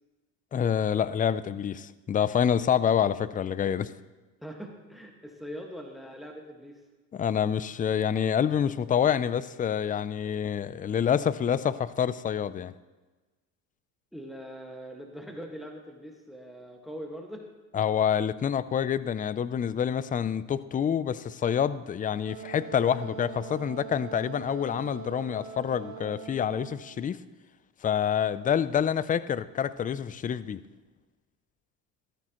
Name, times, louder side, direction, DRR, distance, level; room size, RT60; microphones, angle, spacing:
voice 1, 0.5-3.9 7.1-12.7 17.7-27.2 27.8-30.6, left 8 dB, 20° left, 16 dB, 0.4 m, -27 dB
voice 2, 4.4-6.8 14.1-17.4, equal, ahead, 2 dB, 1.7 m, -42 dB
Wind instrument woodwind instrument, 22.3-27.0, right 8 dB, 80° right, 1.3 m, -43 dB
14.5 x 13.0 x 3.0 m, 1.2 s
supercardioid pair, 80°, 45 cm